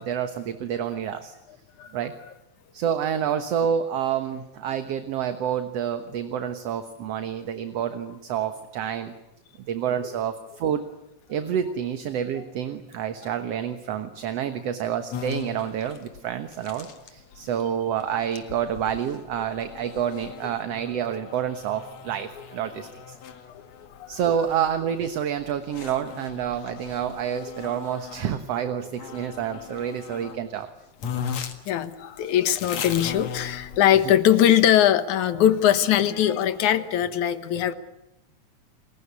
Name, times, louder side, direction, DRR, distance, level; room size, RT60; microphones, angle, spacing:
voice 1, 0.0-1.3 1.9-2.1 2.7-9.1 9.7-10.8 11.3-23.2 24.1-30.7, right 9 dB, 60° right, 9 dB, 2.2 m, -28 dB
sound 1, 15.1-28.3 28.9-30.4 30.7-30.8 31.0-34.1, left 7 dB, 65° left, 3.1 m, -39 dB
voice 2, 31.7-37.7, left 11 dB, 85° left, 12 dB, 2.7 m, -21 dB
30.0 x 21.0 x 8.5 m, 0.90 s
omnidirectional pair, 3.4 m